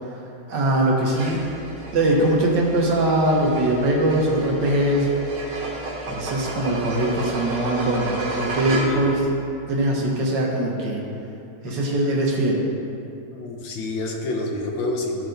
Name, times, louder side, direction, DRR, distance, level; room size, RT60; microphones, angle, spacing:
voice 1, 0.5-1.4 1.9-5.1 6.1-9.2 9.7-11.0 11.6-12.6, right 1 dB, 60° right, -2 dB, 1.6 m, -21 dB
sound 1, 1.1-9.2, right 2 dB, 75° right, 2.3 m, -32 dB
voice 2, 8.7-9.1 11.6-11.8 13.3-15.3, left 2 dB, 70° left, 0 dB, 1.6 m, -28 dB
13.0 x 4.5 x 3.8 m, 2.7 s
omnidirectional pair, 2.3 m